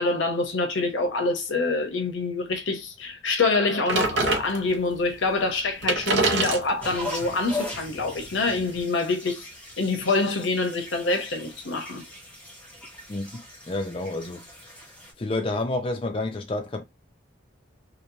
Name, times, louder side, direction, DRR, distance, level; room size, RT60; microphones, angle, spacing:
voice 1, 0.0-9.5 9.8-12.0, left 3 dB, 80° left, 0.8 m, -26 dB
sound 1, 3.9-4.9 5.5-5.6 5.8-8.8, right 3 dB, 75° right, 0.6 m, -27 dB
sound 2, 6.8-15.1, left 1 dB, 5° left, 0.7 m, -39 dB
voice 2, 13.1-14.5 15.2-16.8, left 2 dB, 30° left, 0.4 m, -29 dB
3.0 x 2.0 x 2.6 m
head